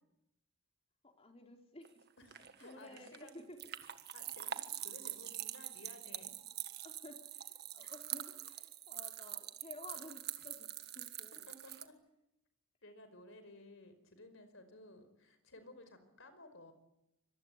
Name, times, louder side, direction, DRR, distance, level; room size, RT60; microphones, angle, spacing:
voice 1, 1.0-2.1 2.6-3.6 6.8-10.7 10.9-11.5, left 2 dB, 30° left, 3 dB, 3.9 m, -54 dB
sound 1, 1.8-11.8, right 12 dB, 50° right, 1.6 m, -45 dB
voice 2, 2.2-3.4 4.1-6.3 7.8-7.9 11.5-11.9 12.8-16.7, left 1 dB, 65° left, 10 dB, 5.1 m, -56 dB
25.5 x 22.5 x 9.7 m, 0.86 s
head